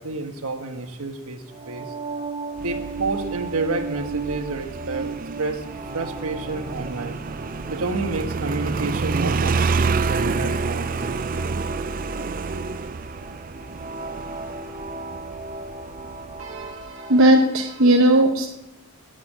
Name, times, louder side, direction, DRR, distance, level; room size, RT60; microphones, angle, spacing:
voice 1, 0.0-1.9 2.6-5.6 5.9-7.2 7.7-11.0, right 3 dB, 80° right, 6 dB, 1.4 m, -29 dB
sound 1, 1.5-17.4, right 3 dB, 25° right, 0.9 m, -36 dB
Motorcycle, 2.6-16.9, right 4 dB, 40° right, 0.4 m, -29 dB
voice 2, 16.4-18.5, right 1 dB, 60° right, 2 dB, 0.9 m, -18 dB
10.0 x 8.2 x 9.1 m, 0.92 s
head